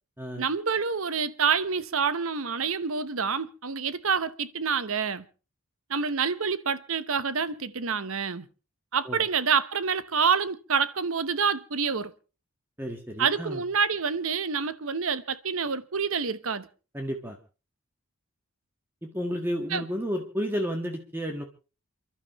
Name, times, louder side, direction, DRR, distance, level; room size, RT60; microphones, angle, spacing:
voice 1, 0.4-5.2 5.9-8.5 8.9-12.1 13.2-16.7 19.7-19.8, right 6 dB, 70° right, 1.0 m, -27 dB
voice 2, 12.8-13.6 16.9-17.4 19.0-21.4, equal, 10° right, 1.6 m, -32 dB
29.0 x 12.0 x 3.1 m
head